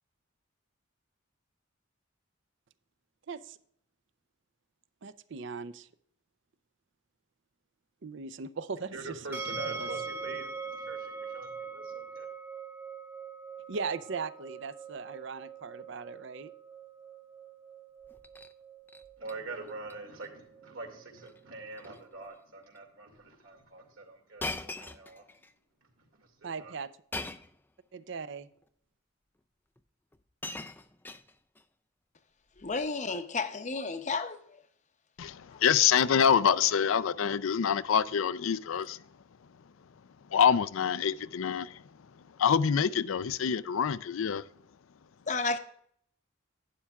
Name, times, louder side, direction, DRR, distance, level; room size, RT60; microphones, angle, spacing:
voice 1, 3.3-3.6 5.0-5.9 8.0-8.9 9.3-9.9 13.7-16.5 26.4-26.9 27.9-28.5, right 5 dB, 60° right, 0.5 m, -39 dB
voice 2, 8.8-12.3 19.2-25.5 25.8-26.8 27.4-27.5, right 3 dB, 85° right, 2.2 m, -45 dB
sound 1, 9.3-22.3, right 4 dB, 10° right, 0.8 m, -43 dB
Shatter, 18.0-18.5 18.9-19.3 19.7-19.9 20.2-20.3 21.2-21.4 21.7-22.0 22.7-22.8 24.4-25.5 27.1-27.6 28.6-28.7 29.8-29.9 30.1-31.6 32.6-32.9, left 2 dB, 10° left, 0.3 m, -41 dB
voice 3, 32.6-34.4 45.3-45.6, left 4 dB, 35° left, 0.7 m, -32 dB
voice 4, 35.2-39.0 40.3-41.8 42.4-44.5, left 7 dB, 75° left, 0.4 m, -26 dB
11.5 x 9.9 x 2.3 m
head